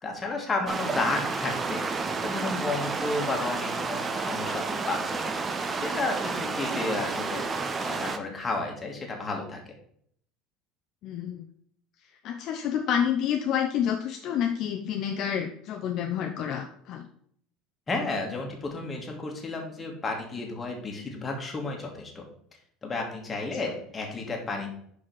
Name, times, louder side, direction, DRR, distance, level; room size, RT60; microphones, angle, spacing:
voice 1, 0.0-5.3 5.7-7.4 7.8-9.6 17.9-22.2 22.8-24.7, left 3 dB, 20° left, 1 dB, 1.8 m, -32 dB
sound 1, 0.7-8.2, right 4 dB, 20° right, 0.7 m, -30 dB
voice 2, 11.0-11.4 12.2-17.1, left 8 dB, 45° left, 4 dB, 0.6 m, -28 dB
5.7 x 5.0 x 6.1 m, 0.65 s
cardioid pair, 150°, 0 cm